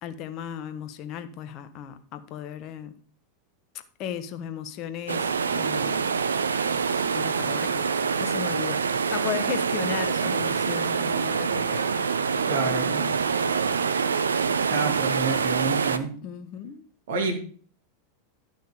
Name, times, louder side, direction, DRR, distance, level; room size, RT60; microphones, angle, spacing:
voice 1, 0.0-2.9 4.0-6.1 6.7-8.8 9.1-11.8 12.9-13.1 16.2-16.9, left 9 dB, 45° left, 1.4 m, -36 dB
sound 1, 5.1-16.0, right 6 dB, 80° right, 0.7 m, -25 dB
voice 2, 12.5-12.9 14.7-16.1 17.1-17.4, right 4 dB, 65° right, 2.4 m, -28 dB
11.5 x 6.3 x 5.0 m
figure-of-eight pair, 90°, 0 cm